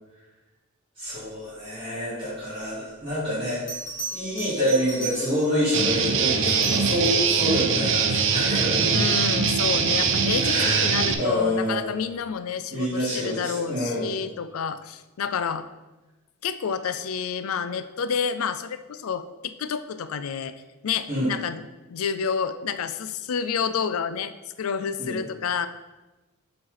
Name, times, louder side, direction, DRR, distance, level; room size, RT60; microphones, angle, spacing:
voice 1, 1.0-3.6 4.1-8.9 10.4-10.8 11.2-11.9 12.7-14.1 21.1-21.3 25.0-25.2, equal, 25° right, -9 dB, 2.3 m, -27 dB
Bell, 3.7-5.6 6.3-7.4 10.1-10.3, right 2 dB, 40° left, 2.2 m, -36 dB
Guitar, 5.7-11.1, right 5 dB, 60° right, 0.6 m, -22 dB
voice 2, 8.9-15.7 16.4-20.5 20.8-21.6 21.9-25.7, left 6 dB, 75° left, 11 dB, 0.4 m, -29 dB
7.1 x 3.2 x 5.7 m, 1.1 s
head